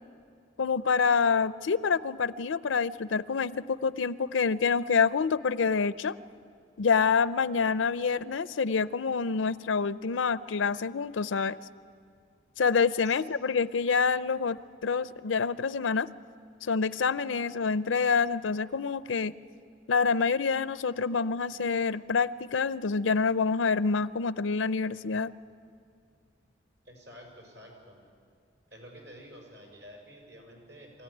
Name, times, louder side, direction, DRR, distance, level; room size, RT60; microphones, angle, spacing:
voice 1, 0.6-6.1 6.8-11.6 12.6-16.1 16.6-19.3 19.9-25.3, left 5 dB, 90° left, 16 dB, 0.5 m, -27 dB
voice 2, 26.8-28.0 28.7-31.0, equal, 75° right, 1 dB, 6.1 m, -50 dB
24.5 x 15.0 x 9.9 m, 2.3 s
head